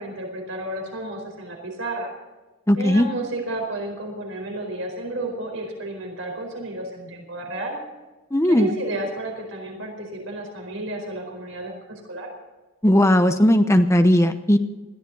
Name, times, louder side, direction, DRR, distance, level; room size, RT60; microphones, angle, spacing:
voice 1, 0.0-2.1 2.8-7.8 8.5-12.3, right 2 dB, 70° right, 2 dB, 4.5 m, -32 dB
voice 2, 2.7-3.1 8.3-8.7 12.8-14.6, left 1 dB, 15° left, 8 dB, 0.9 m, -17 dB
21.0 x 14.5 x 4.0 m, 1.2 s
head